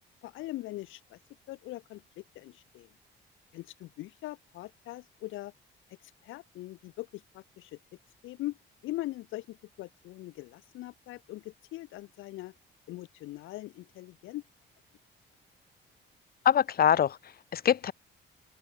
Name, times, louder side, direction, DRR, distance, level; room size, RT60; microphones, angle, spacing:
voice 1, 0.2-1.2 1.5-2.9 3.5-5.5 6.0-7.8 8.2-8.6 8.8-12.5 12.9-14.4, left 17 dB, 80° left, 0.5 m, -41 dB
voice 2, 16.4-17.9, left 9 dB, 50° left, 0.9 m, -24 dB
open air
cardioid pair, 90°, 20 cm